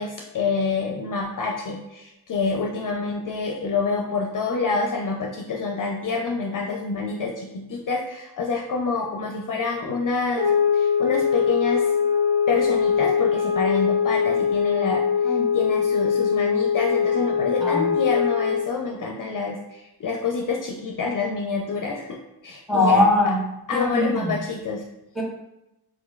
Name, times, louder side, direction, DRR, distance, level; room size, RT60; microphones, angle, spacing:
voice 1, 0.0-11.9 12.5-22.2 22.4-23.0 23.7-24.8, left 4 dB, 50° left, 0 dB, 0.5 m, -27 dB
sound 1, 10.3-18.7, left 7 dB, 50° right, 0.7 m, -22 dB
voice 2, 17.6-17.9 22.7-24.4 25.2-25.3, left 2 dB, ahead, -2 dB, 1.1 m, -21 dB
4.0 x 2.9 x 2.3 m, 0.92 s
cardioid pair, 60°, 43 cm